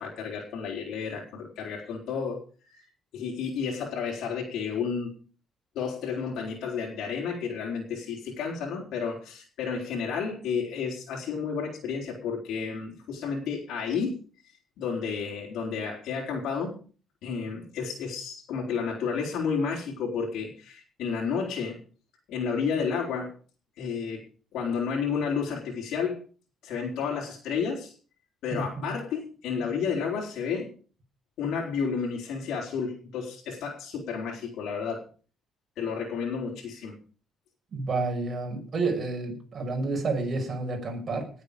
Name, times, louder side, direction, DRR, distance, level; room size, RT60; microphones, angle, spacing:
voice 1, 0.0-2.9 3.1-5.1 5.7-14.2 14.8-16.8 17.2-21.8 22.3-23.3 23.8-24.3 24.5-26.2 26.6-27.9 28.4-30.7 31.4-35.0 35.8-37.0, left 6 dB, 70° left, -2 dB, 4.2 m, -31 dB
voice 2, 28.5-28.9 37.7-41.3, right 3 dB, 30° right, 2 dB, 6.1 m, -30 dB
19.5 x 8.3 x 5.1 m, 0.40 s
cardioid pair, 155°, 0 cm